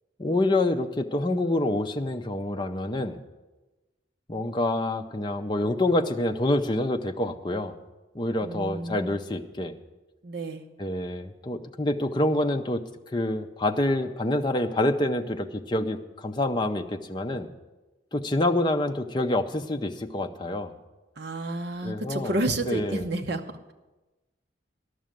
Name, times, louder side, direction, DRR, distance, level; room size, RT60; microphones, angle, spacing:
voice 1, 0.2-3.2 4.3-7.7 8.1-9.7 10.8-12.8 13.1-17.5 18.1-20.7 21.8-22.3 22.6-23.1, left 1 dB, 25° left, 6 dB, 0.6 m, -27 dB
voice 2, 8.4-9.1 10.2-10.7 21.2-23.7, right 2 dB, 55° right, 6 dB, 0.8 m, -30 dB
12.5 x 6.3 x 9.0 m, 1.1 s
head